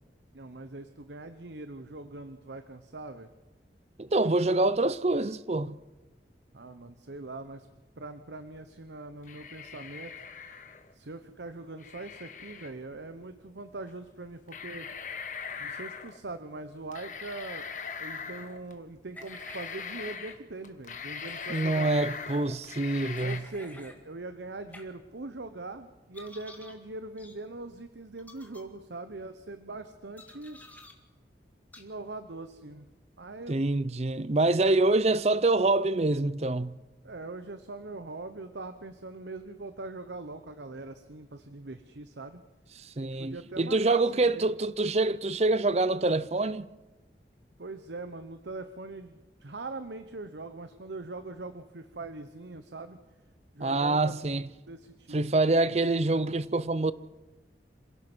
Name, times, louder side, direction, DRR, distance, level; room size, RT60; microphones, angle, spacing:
voice 1, 0.3-3.3 6.5-7.7 8.0-10.3 10.9-14.9 15.6-17.7 18.0-22.2 23.2-30.6 31.8-32.9 33.2-33.6 37.0-42.4 43.0-44.5 47.6-53.0 53.5-55.2, right 2 dB, 80° right, 1.0 m, -42 dB
voice 2, 4.0-5.8 21.5-23.4 33.5-36.7 43.0-46.7 53.6-54.5 55.1-56.9, right 2 dB, 35° right, 0.6 m, -26 dB
sound 1, 9.2-10.9 11.8-12.7 13.9-14.0 14.5-16.2 16.9-18.7 19.2-20.4 20.6-23.4, left 6 dB, 45° left, 1.5 m, -40 dB
sound 2, 19.1-19.8 20.2-20.4 21.2-21.6 23.2-24.0 24.7-24.8 26.1-26.8 27.2-27.4 28.2-28.6 30.2-30.9 31.7-31.8, left 1 dB, 10° left, 1.9 m, -50 dB
27.0 x 16.5 x 6.2 m
head